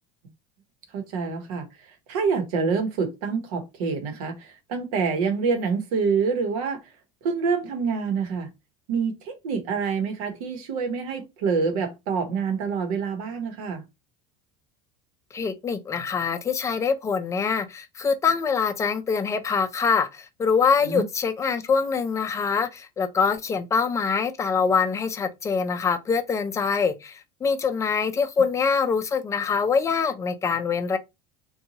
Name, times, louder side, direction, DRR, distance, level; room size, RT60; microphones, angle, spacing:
voice 1, 0.9-1.7 2.1-6.8 7.2-8.5 8.9-13.8 20.8-21.0, right 5 dB, 90° right, 0.9 m, -26 dB
voice 2, 15.3-31.0, left 5 dB, 15° left, 0.4 m, -24 dB
2.8 x 2.2 x 2.7 m
supercardioid pair, 135°, 18 cm